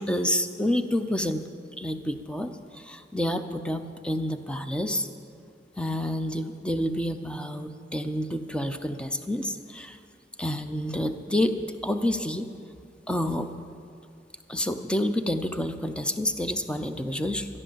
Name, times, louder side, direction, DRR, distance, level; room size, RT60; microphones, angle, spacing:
voice 1, 0.0-1.5 1.8-5.1 5.8-10.0 10.4-12.5 13.1-13.5 14.5-17.5, left 1 dB, 5° left, 8 dB, 0.6 m, -29 dB
13.5 x 10.5 x 7.5 m, 2.3 s
head